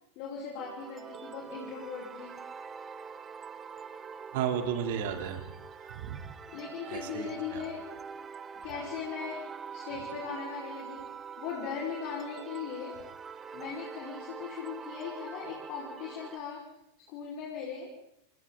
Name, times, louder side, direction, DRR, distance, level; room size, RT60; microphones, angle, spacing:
voice 1, 0.1-2.4 6.5-7.9 8.6-9.4 9.7-11.1 11.4-13.0 13.5-16.7 17.1-17.9, left 6 dB, 45° left, -2 dB, 5.1 m, -39 dB
sound 1, 0.6-16.4, right 6 dB, 20° right, 1.1 m, -44 dB
voice 2, 4.3-5.4 5.8-6.2 6.8-7.6, right 8 dB, 50° right, 5 dB, 3.4 m, -33 dB
30.0 x 28.5 x 4.0 m, 0.74 s
figure-of-eight pair, 90°, 0 cm